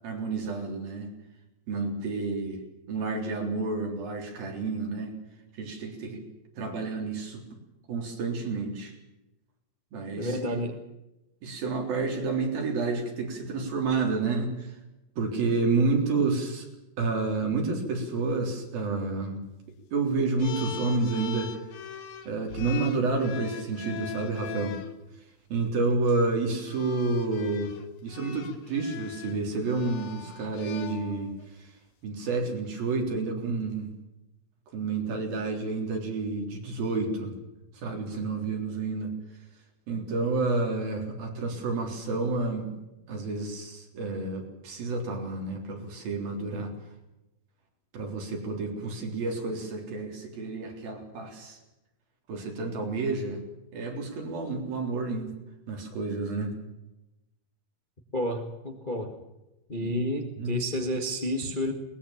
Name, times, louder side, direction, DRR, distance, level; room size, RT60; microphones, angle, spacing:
voice 1, 0.0-1.1 1.7-2.6 2.9-5.2 5.6-6.2 6.6-7.5 7.9-8.9 9.9-10.5 11.4-14.7 15.2-16.7 17.0-19.4 19.9-21.5 22.3-24.8 25.5-27.7 28.0-31.3 31.6-31.7 32.0-33.9 34.7-37.4 37.8-39.2 39.9-42.8 43.1-46.7 47.9-51.6 52.3-53.4 53.7-55.4 55.7-56.6 59.8-60.0 60.4-60.6, right 3 dB, 75° right, 2 dB, 5.5 m, -29 dB
voice 2, 10.2-10.8 58.1-59.2 59.7-61.7, equal, 25° left, 3 dB, 1.1 m, -30 dB
sound 1, 20.4-24.9 25.9-26.1 26.6-31.5, left 8 dB, 75° left, 3.3 m, -41 dB
22.0 x 20.0 x 7.3 m, 0.95 s
omnidirectional pair, 4.2 m